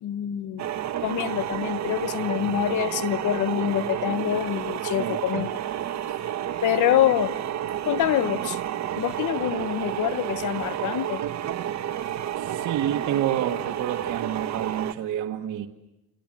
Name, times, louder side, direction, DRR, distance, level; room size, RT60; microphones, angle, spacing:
voice 1, 0.0-0.7 1.0-5.5 6.6-7.4 7.9-8.6 9.0-11.2, left 11 dB, 80° left, 1.2 m, -25 dB
sound 1, 0.6-14.9, right 11 dB, 65° right, 1.3 m, -30 dB
voice 2, 12.4-15.7, right 11 dB, 85° right, 1.6 m, -28 dB
28.5 x 27.5 x 7.6 m
cardioid pair, 90°, 30 cm